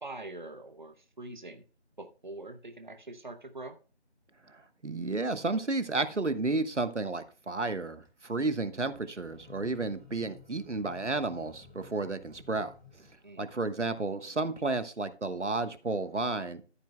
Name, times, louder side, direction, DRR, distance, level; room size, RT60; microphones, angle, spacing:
voice 1, 0.0-1.6 2.0-3.7 13.2-13.5, right 2 dB, 45° right, 7 dB, 0.9 m, -44 dB
voice 2, 4.5-12.7 13.0-13.1 13.4-16.6, right 3 dB, 85° right, 11 dB, 1.3 m, -32 dB
sound 1, 7.8-8.1 8.8-13.8, left 4 dB, 15° left, 6.0 m, -55 dB
13.5 x 8.4 x 2.2 m, 0.35 s
figure-of-eight pair, 170°, 34 cm